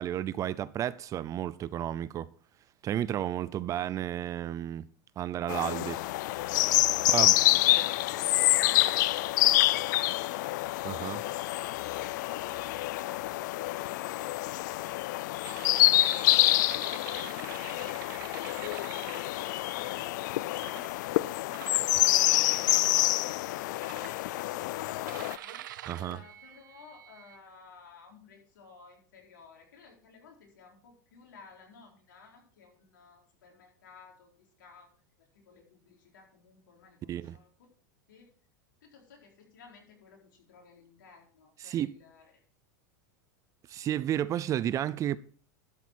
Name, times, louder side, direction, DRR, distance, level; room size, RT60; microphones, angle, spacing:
voice 1, 0.0-2.3 2.8-4.9 5.2-6.0 7.1-7.3 10.8-11.2 25.9-26.2 37.1-37.4 41.6-41.9 43.7-45.2, right 11 dB, 35° right, 0.5 m, -32 dB
sound 1, 5.5-25.4, left 17 dB, 70° left, 0.5 m, -27 dB
voice 2, 6.9-10.4 12.4-14.5 16.7-34.9 35.2-37.7 38.1-38.3 38.8-42.3, left 5 dB, 85° left, 3.9 m, -56 dB
sound 2, 15.4-20.0 20.5-20.9 21.5-22.3 22.7-23.1 23.8-24.5 25.1-27.4, right 13 dB, 80° right, 0.6 m, -46 dB
12.0 x 7.2 x 4.5 m
supercardioid pair, 115°, 10 cm